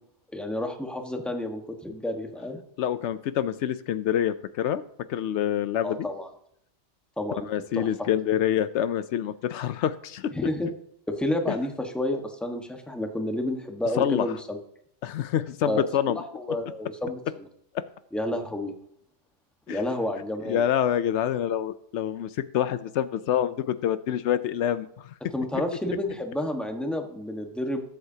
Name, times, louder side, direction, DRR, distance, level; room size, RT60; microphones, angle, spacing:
voice 1, 0.3-2.6 5.8-6.3 7.2-7.5 7.7-8.1 10.3-10.7 11.1-14.6 15.6-15.8 16.1-17.4 18.1-18.7 19.7-20.6 25.3-27.8, left 1 dB, ahead, 3 dB, 1.3 m, -30 dB
voice 2, 2.8-4.8 5.1-6.1 7.5-10.3 14.0-14.3 15.0-16.2 17.7-17.8 19.7-19.8 20.4-25.1, left 10 dB, 85° left, 13 dB, 0.9 m, -26 dB
20.5 x 8.0 x 2.8 m, 0.72 s
omnidirectional pair, 1.2 m